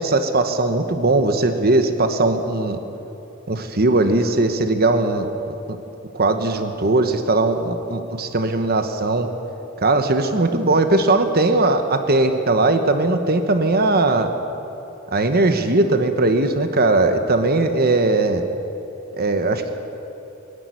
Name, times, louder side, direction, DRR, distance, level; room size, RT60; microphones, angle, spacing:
voice 1, 0.0-2.8 3.5-5.8 6.1-9.3 9.8-14.3 15.1-18.4 19.2-19.7, right 2 dB, 45° right, 7 dB, 1.2 m, -19 dB
23.0 x 13.0 x 9.6 m, 3.0 s
head